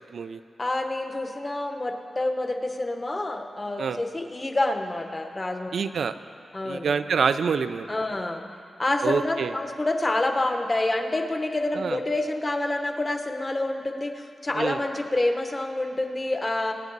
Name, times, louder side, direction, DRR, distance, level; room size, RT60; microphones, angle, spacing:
voice 1, 0.6-5.7 6.5-7.0 7.9-8.4 8.8-16.7, left 2 dB, 20° left, 5 dB, 0.9 m, -27 dB
voice 2, 5.7-6.1 6.7-8.0 9.0-9.5 11.7-12.0 14.5-14.8, right 6 dB, 75° right, 10 dB, 0.4 m, -26 dB
23.0 x 9.4 x 4.0 m, 2.4 s
wide cardioid pair, 155°, 0 cm